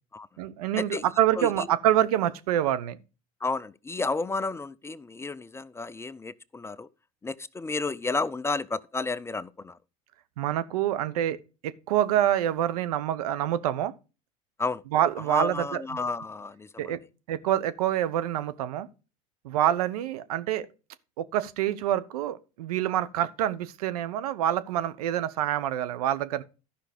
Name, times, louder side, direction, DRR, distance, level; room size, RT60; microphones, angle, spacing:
voice 1, 0.4-3.0 10.4-11.4 11.6-13.9 14.9-16.0 16.8-17.0 17.3-18.9 19.4-20.7 21.2-26.4, right 11 dB, 80° right, 0.9 m, -26 dB
voice 2, 1.4-1.7 3.4-6.9 7.2-9.8 14.6-14.8 15.3-16.9, left 3 dB, 15° left, 0.5 m, -32 dB
12.0 x 5.8 x 5.0 m
supercardioid pair, 95°, 19 cm